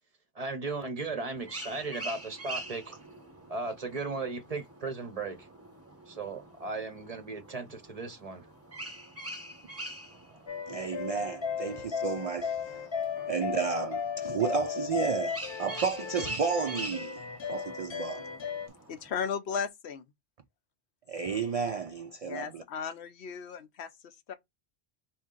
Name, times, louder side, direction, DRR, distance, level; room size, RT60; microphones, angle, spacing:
voice 1, 0.3-2.9 3.5-5.5 6.1-8.5, right 3 dB, 40° right, 0.7 m, -36 dB
sound 1, 1.4-19.1, right 1 dB, 15° right, 0.9 m, -45 dB
sound 2, 10.5-18.7, left 7 dB, 45° left, 0.3 m, -36 dB
voice 2, 10.7-12.6 13.1-18.2 21.1-22.6, right 6 dB, 65° right, 0.3 m, -32 dB
voice 3, 18.9-20.1 22.2-24.3, left 6 dB, 80° left, 0.9 m, -36 dB
4.3 x 2.7 x 3.7 m
omnidirectional pair, 1.1 m